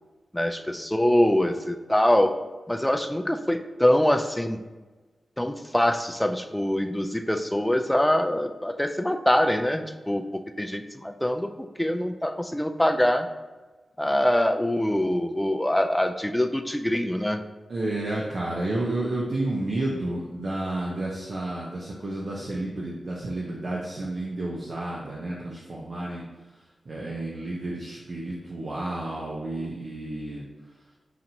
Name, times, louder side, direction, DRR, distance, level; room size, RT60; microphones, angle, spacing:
voice 1, 0.3-2.4 2.7-4.6 5.4-11.5 11.8-13.3 14.0-17.4, left 1 dB, 10° left, 6 dB, 0.3 m, -24 dB
voice 2, 17.7-26.2 26.9-30.4, right 2 dB, 60° right, -4 dB, 0.6 m, -31 dB
5.8 x 2.5 x 2.8 m, 1.2 s
cardioid pair, 65°, 0 cm